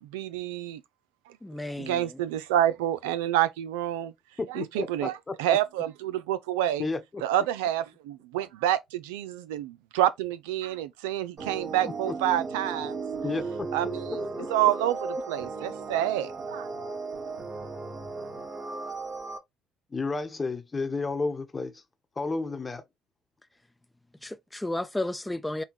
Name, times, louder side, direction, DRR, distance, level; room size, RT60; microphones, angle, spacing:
voice 1, 0.1-0.8 1.8-4.1 4.5-6.9 7.2-13.0 13.7-16.7, right 12 dB, 85° right, 0.4 m, -28 dB
voice 2, 1.4-2.0 24.2-25.6, left 1 dB, 10° left, 0.6 m, -32 dB
voice 3, 4.4-5.3 6.8-7.2 11.8-12.2 13.2-13.7 14.4-14.5 19.9-21.8 22.2-22.8, left 3 dB, 30° left, 1.0 m, -32 dB
sound 1, 11.4-19.4, right 4 dB, 55° right, 2.2 m, -35 dB
5.3 x 2.2 x 3.0 m
hypercardioid pair, 60°, 0 cm